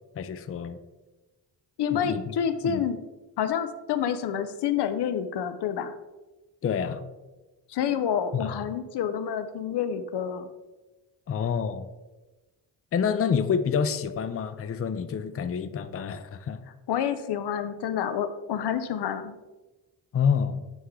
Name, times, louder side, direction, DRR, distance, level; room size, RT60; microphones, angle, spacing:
voice 1, 0.2-0.8 1.9-2.2 2.6-2.8 6.6-7.0 8.3-8.4 11.3-11.9 12.9-16.6 20.1-20.6, left 7 dB, 35° left, 11 dB, 0.5 m, -27 dB
voice 2, 1.8-3.0 3.4-5.9 7.7-10.5 16.9-19.3, left 8 dB, 85° left, 10 dB, 0.6 m, -28 dB
9.2 x 3.2 x 3.7 m, 1.1 s
cardioid pair, 95°, 39 cm